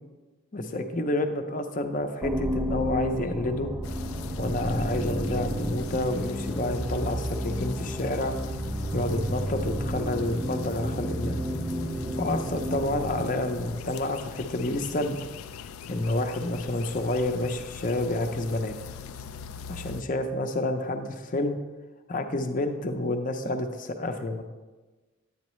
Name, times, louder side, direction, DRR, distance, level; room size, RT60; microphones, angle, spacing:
voice 1, 0.5-3.7 4.4-8.3 8.9-11.3 12.1-15.2 15.9-18.7 19.7-21.6 22.1-24.4, left 2 dB, 40° left, 6 dB, 0.6 m, -29 dB
sound 1, 2.2-14.1, right 1 dB, 10° right, 0.3 m, -32 dB
sound 2, 3.8-20.0, left 7 dB, 80° left, 0.4 m, -41 dB
10.5 x 8.7 x 3.1 m, 1.2 s
head